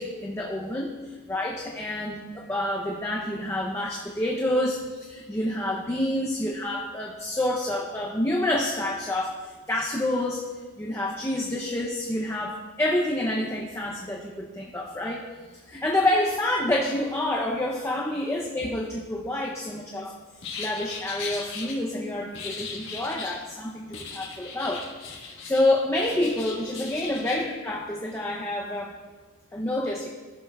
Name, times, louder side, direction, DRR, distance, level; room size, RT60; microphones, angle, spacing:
voice 1, 0.0-9.3 9.7-10.4 10.8-15.3 15.7-24.9 25.2-29.0 29.5-30.1, left 1 dB, 15° left, -2 dB, 0.5 m, -28 dB
sound 1, 20.4-21.7 22.3-23.4 23.9-25.7 26.0-27.4, left 5 dB, 60° left, 1.5 m, -38 dB
13.0 x 6.9 x 2.3 m, 1.4 s
head